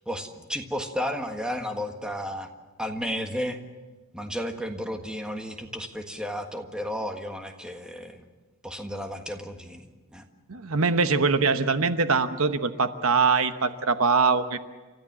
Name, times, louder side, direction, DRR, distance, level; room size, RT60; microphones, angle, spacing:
voice 1, 0.0-2.5 2.8-3.6 4.1-8.2 8.6-10.2, equal, 5° right, 4 dB, 1.5 m, -33 dB
voice 2, 10.5-14.6, right 4 dB, 90° right, 10 dB, 1.1 m, -23 dB
29.5 x 14.0 x 7.5 m, 1.3 s
head